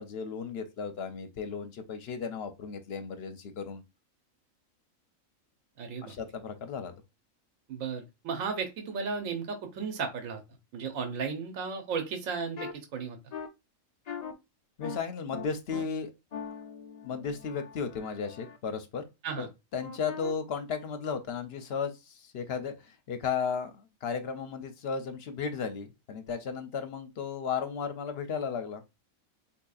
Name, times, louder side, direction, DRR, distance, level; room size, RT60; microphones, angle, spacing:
voice 1, 0.0-3.8 6.0-6.9 14.8-16.1 17.0-19.1 19.4-19.5 19.7-28.8, left 6 dB, 60° left, 0.7 m, -35 dB
voice 2, 5.8-6.1 7.7-10.4 10.7-13.2 19.2-19.5, right 5 dB, 75° right, 1.2 m, -34 dB
sound 1, 12.6-12.7 13.3-13.5 14.1-14.3 14.8-15.0 15.3-15.8 16.3-18.6 19.8-20.3, left 6 dB, 90° left, 0.3 m, -41 dB
4.2 x 2.7 x 2.3 m
omnidirectional pair, 1.4 m